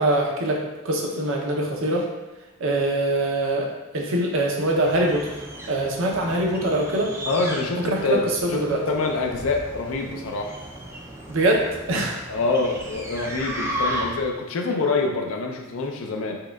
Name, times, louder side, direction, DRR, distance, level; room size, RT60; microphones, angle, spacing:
voice 1, 0.0-2.1 2.6-3.7 3.9-5.3 5.7-7.1 7.8-8.8 11.3-12.2, right 1 dB, 65° right, 0 dB, 0.6 m, -23 dB
sound 1, 4.6-14.4, equal, 10° right, 0.3 m, -35 dB
voice 2, 7.3-8.2 8.5-10.6 12.3-16.4, left 3 dB, 65° left, 2 dB, 0.4 m, -26 dB
4.5 x 2.2 x 2.2 m, 1.2 s
head